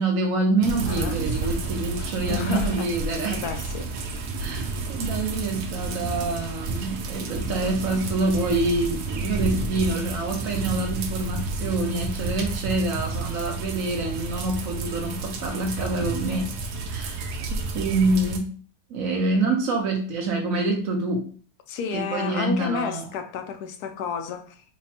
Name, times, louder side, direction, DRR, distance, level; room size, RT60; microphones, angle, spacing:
voice 1, 0.0-3.4 4.4-16.5 16.9-18.5 18.9-21.3 21.9-23.1, right 2 dB, 65° right, 1.0 m, -26 dB
sound 1, 0.6-18.4, right 3 dB, 85° right, 1.2 m, -30 dB
voice 2, 0.9-1.2 1.4-1.6 2.0-2.9 3.3-4.2 21.7-24.6, left 6 dB, 80° left, 1.1 m, -32 dB
3.3 x 2.2 x 4.1 m
omnidirectional pair, 1.6 m